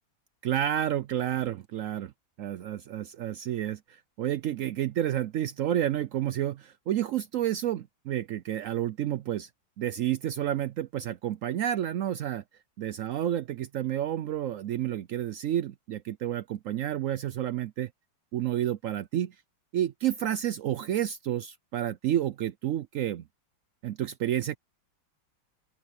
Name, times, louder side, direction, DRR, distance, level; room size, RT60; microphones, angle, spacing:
voice 1, 0.4-2.1 2.4-9.5 9.8-12.4 12.8-17.9 18.3-19.3 19.7-23.2 23.8-24.6, right 11 dB, 80° right, 0.7 m, -30 dB
open air
omnidirectional pair, 1.9 m